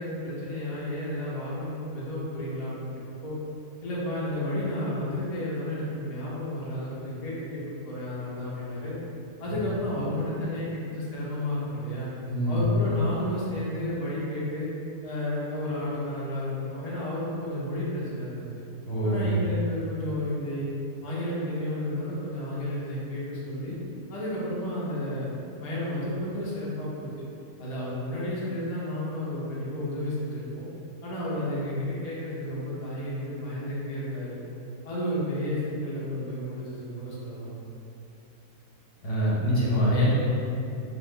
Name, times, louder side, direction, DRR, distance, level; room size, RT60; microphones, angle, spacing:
voice 1, 0.0-2.9 3.2-3.3 3.8-9.0 9.4-12.1 12.5-14.7 15.0-18.5 19.0-20.7 21.0-23.8 24.1-25.3 25.6-27.1 27.6-30.7 31.0-34.4 34.8-37.5, left 1 dB, 75° left, -7 dB, 0.3 m, -32 dB
voice 2, 12.3-12.7 18.9-19.3 39.0-40.1, equal, 55° left, -7 dB, 0.7 m, -24 dB
2.4 x 2.3 x 3.5 m, 2.7 s
omnidirectional pair, 1.5 m